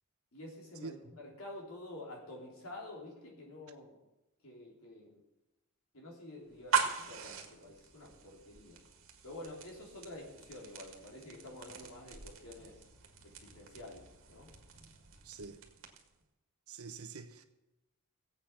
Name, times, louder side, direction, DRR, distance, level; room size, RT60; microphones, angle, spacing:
voice 1, 0.3-4.0 4.4-5.2 5.9-8.8 9.2-12.8 13.2-14.5, left 1 dB, 70° left, 3.5 m, -49 dB
sound 1, 6.5-16.2, right 6 dB, 65° right, 1.9 m, -41 dB
voice 2, 15.2-15.6 16.7-17.4, right 4 dB, 80° right, 1.1 m, -45 dB
16.5 x 8.3 x 5.8 m
head